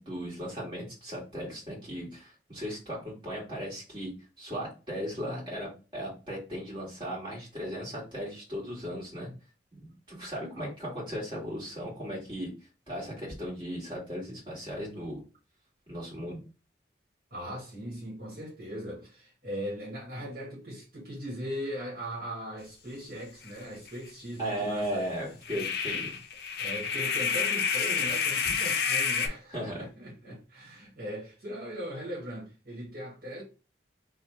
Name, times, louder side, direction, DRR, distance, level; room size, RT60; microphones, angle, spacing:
voice 1, 0.0-9.3 9.7-12.5 12.9-15.2 15.9-16.4 24.4-26.1 28.1-28.2 28.4-28.5 29.5-29.8, equal, 25° right, 1.7 m, -37 dB
voice 2, 17.3-25.0 25.5-25.6 25.9-26.1 26.6-33.4, equal, 55° right, 1.4 m, -39 dB
sound 1, 23.5-23.6 23.9-24.0 25.4-29.3, left 6 dB, 60° left, 0.5 m, -29 dB
3.1 x 2.3 x 4.2 m
head